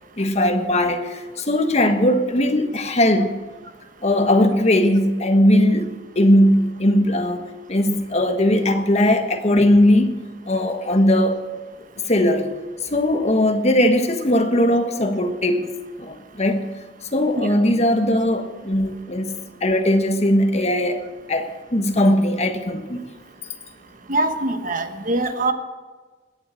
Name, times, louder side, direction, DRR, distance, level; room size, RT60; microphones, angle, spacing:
voice 1, 0.2-3.3 4.0-7.4 7.7-11.4 12.1-12.5 12.9-15.7 16.0-16.7 17.1-19.3 19.6-23.0, left 1 dB, 40° left, 1.4 m, -19 dB
voice 2, 24.1-25.5, right 2 dB, 50° right, 1.2 m, -23 dB
20.5 x 8.1 x 7.5 m
head